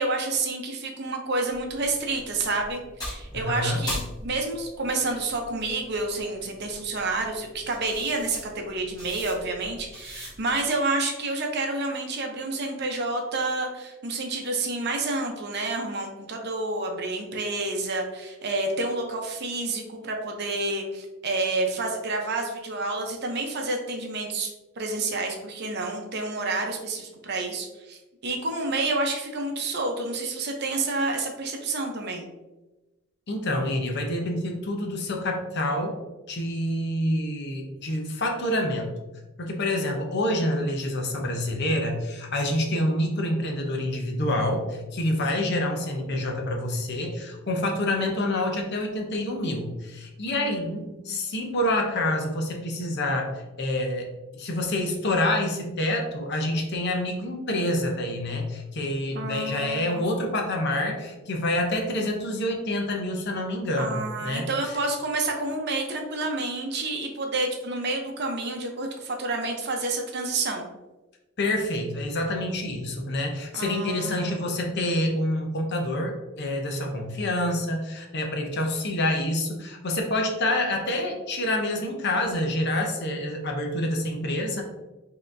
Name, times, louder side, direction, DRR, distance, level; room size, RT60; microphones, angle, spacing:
voice 1, 0.0-24.5 24.8-32.3 50.3-51.1 59.1-60.3 63.8-70.7 73.5-74.4, right 2 dB, 50° right, 2 dB, 0.7 m, -29 dB
sound 1, 1.5-10.6, left 1 dB, 20° left, 1.3 m, -41 dB
voice 2, 3.3-3.8 33.3-36.0 36.3-38.9 39.4-54.1 54.3-64.7 71.4-84.6, left 1 dB, 55° left, 2 dB, 0.7 m, -27 dB
5.5 x 2.9 x 2.6 m, 1.1 s
head